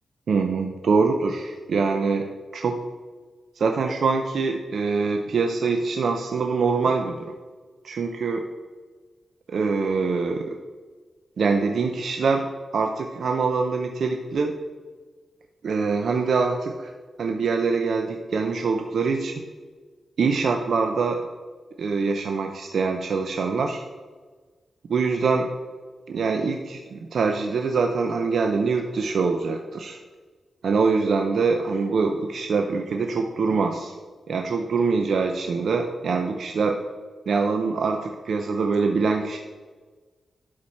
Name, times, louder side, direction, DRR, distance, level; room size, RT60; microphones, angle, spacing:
voice 1, 0.3-2.8 3.6-7.3 7.8-8.5 9.5-10.6 11.4-12.5 12.7-14.5 15.6-16.9 17.2-19.3 20.2-21.2 21.8-23.8 24.9-25.5 26.1-30.0 30.6-33.9 34.3-36.8 37.3-39.4, right 4 dB, 70° right, 4 dB, 0.6 m, -24 dB
11.5 x 4.7 x 4.3 m, 1.4 s
cardioid pair, 80°, 0 cm